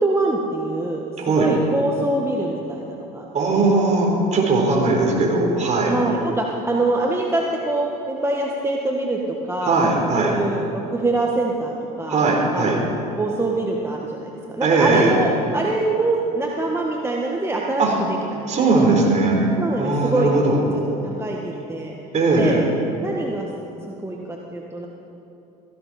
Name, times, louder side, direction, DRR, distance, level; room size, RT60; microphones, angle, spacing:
voice 1, 0.0-1.0 1.3-3.7 5.8-9.8 10.2-12.2 12.5-12.9 13.2-18.9 19.6-20.3 21.0-22.0 22.4-22.6 23.0-23.5 23.9-24.9, right 2 dB, 15° right, -1 dB, 1.6 m, -24 dB
voice 2, 1.2-1.5 3.3-5.9 9.6-10.4 12.1-12.8 14.6-15.1 17.8-18.0 18.5-19.4 19.8-20.6 22.1-22.6, right 3 dB, 40° right, 0 dB, 4.0 m, -19 dB
16.5 x 15.0 x 4.3 m, 2.9 s
hypercardioid pair, 70°, 19 cm